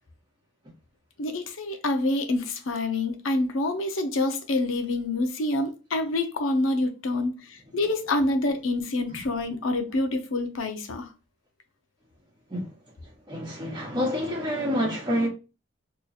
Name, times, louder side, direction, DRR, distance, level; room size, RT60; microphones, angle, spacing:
voice 1, 1.2-11.1, left 2 dB, 80° left, 0.6 m, -27 dB
voice 2, 13.3-15.3, equal, 20° right, 1.1 m, -27 dB
2.9 x 2.4 x 3.9 m
head